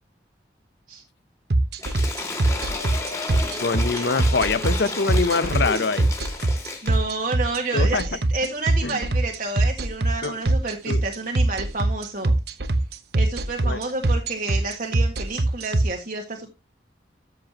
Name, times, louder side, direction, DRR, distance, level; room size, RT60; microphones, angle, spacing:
sound 1, 1.5-15.8, right 2 dB, 65° right, 1.0 m, -21 dB
Cheering / Applause / Crowd, 1.8-7.0, left 2 dB, 15° left, 2.6 m, -32 dB
voice 1, 3.6-6.1 6.4-6.6 7.7-8.0 8.8-9.0 10.2-10.4 10.9-11.0 13.6-13.8, left 4 dB, 75° left, 0.7 m, -24 dB
voice 2, 6.8-12.3 13.1-16.5, right 3 dB, 50° right, 1.7 m, -30 dB
13.0 x 7.7 x 2.9 m
head